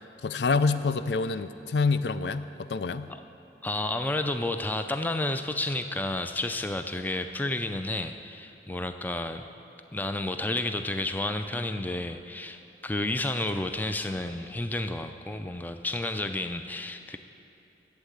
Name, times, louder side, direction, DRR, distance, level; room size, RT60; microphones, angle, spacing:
voice 1, 0.2-3.1, left 4 dB, 75° left, 12 dB, 0.4 m, -27 dB
voice 2, 3.6-9.5 9.9-17.2, left 2 dB, 10° left, 7 dB, 0.4 m, -31 dB
12.0 x 8.2 x 7.9 m, 2.7 s
head